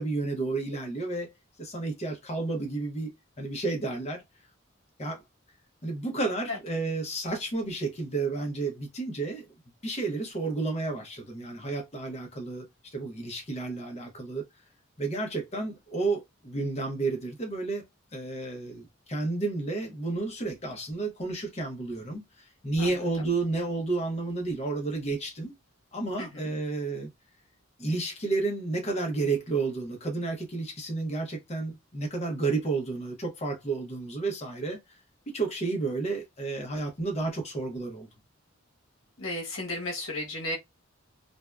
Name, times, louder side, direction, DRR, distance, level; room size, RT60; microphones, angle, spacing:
voice 1, 0.0-1.3 1.6-4.2 5.0-5.2 5.8-9.5 9.8-14.4 15.0-17.8 18.1-25.6 25.9-27.1 27.8-34.8 35.3-38.1, right 3 dB, 30° left, 0.7 m, -31 dB
voice 2, 22.8-23.3 26.2-26.5 39.2-40.6, left 1 dB, 80° left, 1.0 m, -34 dB
2.6 x 2.2 x 2.2 m
head